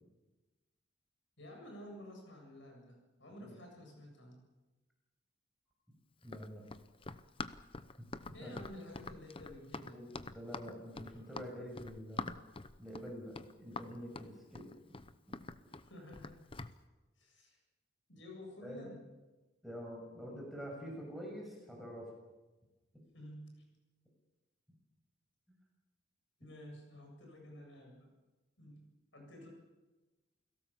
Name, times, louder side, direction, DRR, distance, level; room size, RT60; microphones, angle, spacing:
voice 1, 1.4-4.4 8.3-10.1 15.8-16.4 17.2-17.6 18.1-19.0 23.1-23.7 26.4-28.2 28.6-29.5, left 1 dB, 70° left, 2 dB, 7.7 m, -51 dB
Run, 6.2-16.8, left 3 dB, 30° left, 0.8 m, -45 dB
voice 2, 6.2-6.6 8.0-8.5 9.9-12.4 12.8-14.7 15.3-15.4 18.6-18.9 19.6-22.1, equal, ahead, -1 dB, 6.4 m, -47 dB
29.0 x 18.0 x 7.3 m, 1.1 s
head